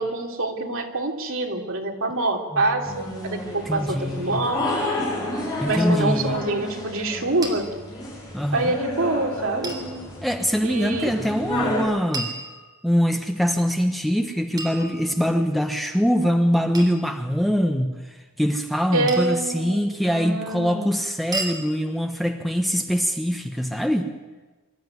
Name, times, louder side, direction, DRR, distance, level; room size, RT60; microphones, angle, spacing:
voice 1, 0.0-4.8 5.6-7.7 8.5-9.8 10.6-11.1 18.9-20.9, right 2 dB, 60° right, 2 dB, 3.0 m, -26 dB
sound 1, 2.8-11.8, left 1 dB, 20° left, 7.5 m, -30 dB
voice 2, 3.7-4.4 5.6-6.4 8.3-8.7 10.2-12.3 12.8-17.9 18.4-24.1, equal, ahead, 5 dB, 1.1 m, -23 dB
sound 2, 7.4-7.5 9.6-9.9 12.1-13.0 14.6-15.5 16.7-17.0 19.1-19.5 21.3-21.6, right 2 dB, 15° right, 3.5 m, -33 dB
24.5 x 13.0 x 9.5 m, 1.2 s
head